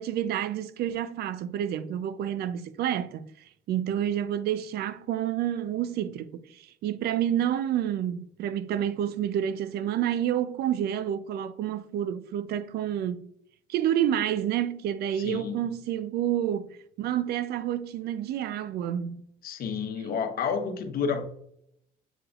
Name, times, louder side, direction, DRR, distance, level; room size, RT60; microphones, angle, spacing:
voice 1, 0.0-3.3 3.7-13.3 13.7-19.2, right 10 dB, 70° right, 0.5 m, -29 dB
voice 2, 15.2-15.7 19.4-21.2, left 6 dB, 60° left, 1.1 m, -30 dB
8.0 x 4.9 x 2.4 m
cardioid pair, 110°, 17 cm